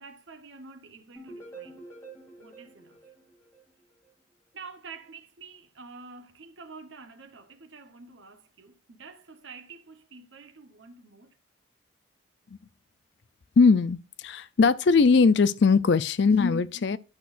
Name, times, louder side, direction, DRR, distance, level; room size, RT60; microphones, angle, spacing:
voice 1, 0.0-1.8 2.4-3.1 4.5-11.4, right 4 dB, 65° right, 1.1 m, -48 dB
sound 1, 1.2-4.1, right 3 dB, 15° left, 3.3 m, -47 dB
voice 2, 13.6-17.0, left 4 dB, 60° left, 0.4 m, -20 dB
10.5 x 6.0 x 2.5 m
head